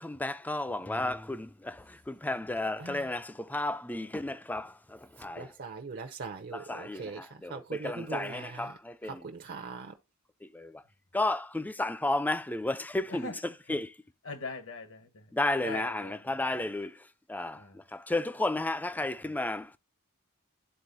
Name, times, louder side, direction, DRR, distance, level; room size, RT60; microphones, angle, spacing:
voice 1, 0.0-5.4 6.7-7.0 7.4-7.5 7.8-8.7 10.5-10.7 11.1-13.3 13.7-13.9 15.3-16.9 17.3-17.6 17.9-19.8, left 2 dB, 10° left, 0.4 m, -32 dB
voice 2, 2.8-3.2 5.3-9.9, right 4 dB, 50° right, 0.7 m, -41 dB
voice 3, 13.1-13.8 14.2-15.3 15.6-16.7 17.5-17.8 19.2-19.3, left 3 dB, 65° left, 1.2 m, -43 dB
11.5 x 4.0 x 2.6 m
head